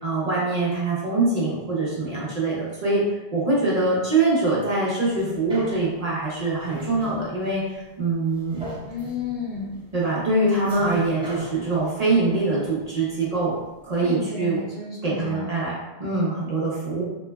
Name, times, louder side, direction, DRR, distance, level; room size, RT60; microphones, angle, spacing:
voice 1, 0.0-3.0 3.3-8.6 9.9-13.5 13.8-14.6 15.0-17.0, right 3 dB, 45° right, -6 dB, 0.7 m, -24 dB
sound 1, 5.1-13.6 14.0-14.1, left 1 dB, 5° right, 0.6 m, -40 dB
voice 2, 8.8-9.8 14.0-15.5, left 5 dB, 50° left, -7 dB, 1.0 m, -32 dB
3.1 x 2.0 x 2.2 m, 1.1 s
omnidirectional pair, 1.0 m